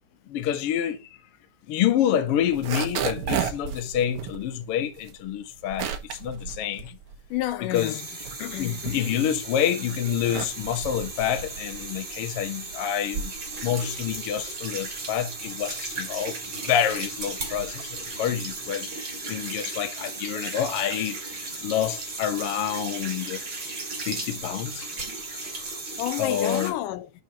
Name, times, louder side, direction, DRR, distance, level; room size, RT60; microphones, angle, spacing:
voice 1, 0.3-1.1 1.7-6.9 7.7-7.9 8.6-13.4 13.6-16.4 16.7-23.4 24.0-24.9 26.2-26.7, left 10 dB, 60° left, 1.7 m, -27 dB
sound 1, 2.4-7.7 8.0-9.5 10.0-18.7, right 8 dB, 65° right, 1.4 m, -35 dB
voice 2, 7.3-8.1 8.4-9.2 19.3-19.5 25.4-27.1, left 14 dB, 90° left, 2.4 m, -32 dB
sound 2, 7.7-26.7, right 3 dB, 35° right, 3.1 m, -36 dB
11.0 x 4.9 x 2.9 m
omnidirectional pair, 3.6 m